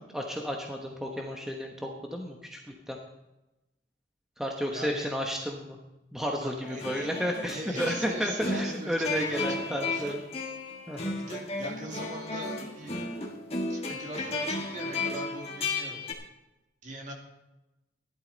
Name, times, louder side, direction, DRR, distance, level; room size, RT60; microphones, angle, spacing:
voice 1, 0.0-3.0 4.4-5.8 6.1-10.1 10.9-11.2, equal, ahead, 1 dB, 1.1 m, -32 dB
voice 2, 4.7-5.1 6.4-7.1 7.4-10.2 11.2-13.1 13.7-16.0 16.8-17.1, right 1 dB, 40° right, 1 dB, 2.4 m, -41 dB
sound 1, 6.6-16.1, left 2 dB, 35° left, 1.9 m, -34 dB
15.0 x 12.0 x 4.0 m, 0.97 s
head